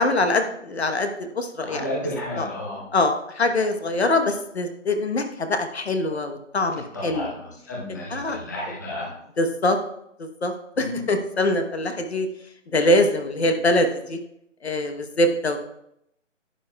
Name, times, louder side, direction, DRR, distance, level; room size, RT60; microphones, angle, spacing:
voice 1, 0.0-1.9 2.3-2.5 2.9-7.3 8.1-8.4 9.4-9.8 10.2-12.3 12.7-14.2 14.6-15.6, left 1 dB, 55° left, 7 dB, 1.1 m, -23 dB
voice 2, 1.6-2.8 6.9-9.1 10.8-11.1, left 1 dB, 15° left, -4 dB, 0.8 m, -32 dB
11.5 x 9.0 x 2.3 m, 0.77 s
figure-of-eight pair, 165°, 38 cm